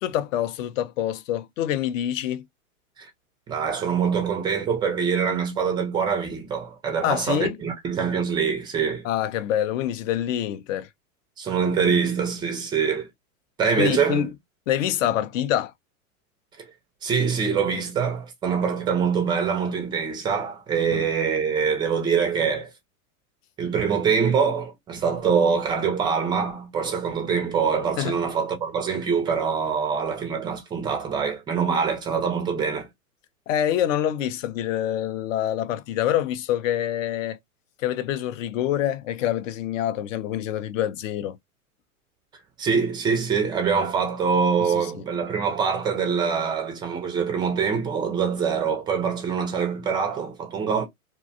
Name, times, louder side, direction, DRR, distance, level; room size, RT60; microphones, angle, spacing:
voice 1, 0.0-2.4 7.0-7.6 9.0-10.9 13.8-14.3 14.7-15.7 20.9-21.1 28.0-28.1 33.5-37.4 37.8-41.4 44.6-45.0, left 11 dB, 60° left, 0.5 m, -26 dB
voice 2, 3.5-9.1 11.4-13.1 13.6-14.3 17.0-22.7 23.6-32.9 42.6-50.8, right 6 dB, 10° right, 0.3 m, -24 dB
2.6 x 2.2 x 2.6 m
hypercardioid pair, 110°, 44 cm